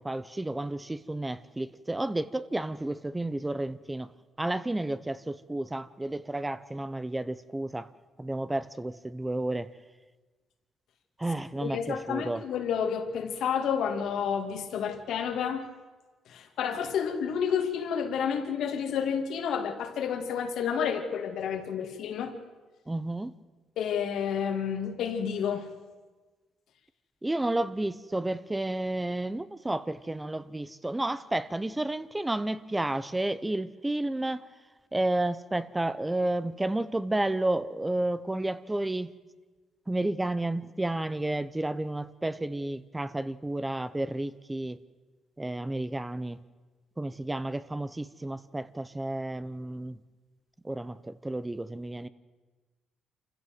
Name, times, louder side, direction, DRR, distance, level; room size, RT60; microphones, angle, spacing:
voice 1, 0.0-4.1 4.4-7.9 8.2-9.7 11.2-12.4 22.9-23.3 27.2-34.4 34.9-39.1 39.9-44.8 45.4-46.4 47.0-50.0 50.6-52.1, right 1 dB, 15° right, 0.8 m, -31 dB
voice 2, 11.6-15.7 16.3-22.4 23.8-25.7, left 7 dB, 75° left, 2.3 m, -30 dB
26.5 x 15.5 x 7.9 m
cardioid pair, 90°, 0 cm